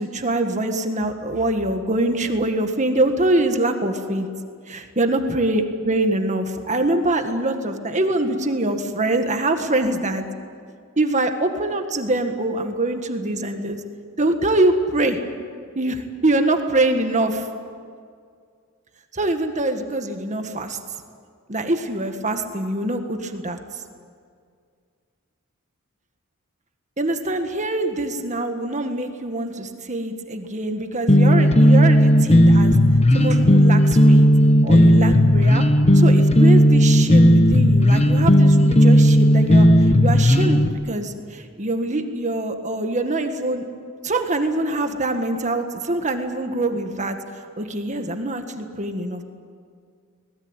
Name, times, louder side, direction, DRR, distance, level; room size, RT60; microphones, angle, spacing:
voice 1, 0.0-4.3 4.7-10.2 11.0-13.8 14.2-15.2 15.8-17.5 19.1-20.8 21.5-23.6 27.0-32.7 33.1-34.3 34.6-35.6 35.9-39.7 40.0-43.6 44.0-47.2 47.6-49.2, right 2 dB, 35° right, 6 dB, 1.8 m, -24 dB
sound 1, 31.1-40.7, equal, 30° left, 1.1 m, -14 dB
24.5 x 19.5 x 9.0 m, 2.1 s
head